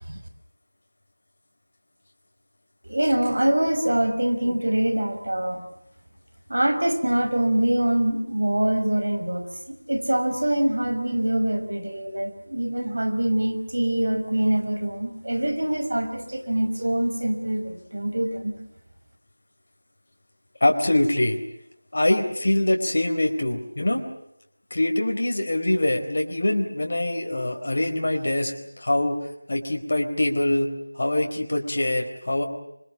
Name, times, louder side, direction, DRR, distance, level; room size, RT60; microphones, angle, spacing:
voice 1, 2.9-5.6 6.5-9.4 9.9-18.5, right 1 dB, 65° right, 7 dB, 5.5 m, -24 dB
voice 2, 20.6-21.4 21.9-24.1 24.7-29.2 29.5-32.4, left 1 dB, 50° left, 2 dB, 4.3 m, -24 dB
25.5 x 25.5 x 7.5 m, 0.77 s
figure-of-eight pair, 170°, 0 cm